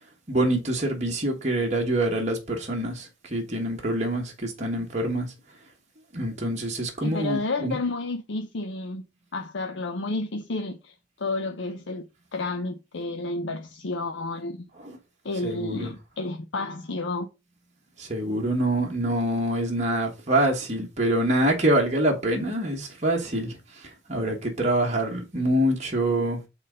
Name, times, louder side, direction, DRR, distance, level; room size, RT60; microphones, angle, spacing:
voice 1, 0.3-5.3 6.1-7.8 14.8-15.0 15.4-15.9 18.0-26.5, right 1 dB, 35° right, 1.3 m, -25 dB
voice 2, 7.0-9.0 9.3-10.9 11.2-12.1 12.3-14.7 15.2-17.3, left 2 dB, 75° left, 0.7 m, -31 dB
5.8 x 4.0 x 5.0 m
head